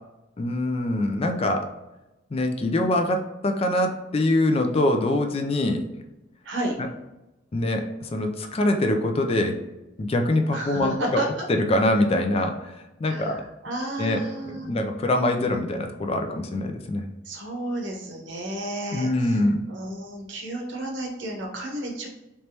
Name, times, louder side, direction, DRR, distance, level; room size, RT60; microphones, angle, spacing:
voice 1, 0.4-1.7 2.3-5.9 7.5-9.6 10.0-11.2 11.5-13.4 14.0-17.0 18.9-19.6, left 1 dB, 30° left, 5 dB, 0.4 m, -24 dB
voice 2, 6.4-6.8 10.5-11.4 13.1-14.7 17.2-19.4 19.7-22.1, right 1 dB, 65° right, 1 dB, 0.9 m, -32 dB
3.3 x 3.0 x 2.8 m, 0.98 s
head